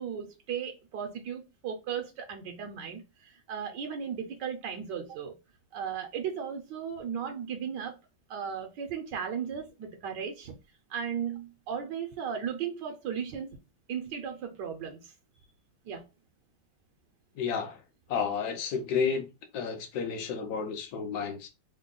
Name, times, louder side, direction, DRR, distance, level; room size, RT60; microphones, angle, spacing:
voice 1, 0.0-5.4 5.7-8.0 8.3-10.5 10.9-13.6 13.9-15.1 15.9-16.0, right 7 dB, 70° right, 1.2 m, -36 dB
voice 2, 17.4-17.8 18.1-19.3 19.5-21.5, left 6 dB, 60° left, 1.1 m, -31 dB
3.6 x 2.2 x 3.7 m
omnidirectional pair, 2.2 m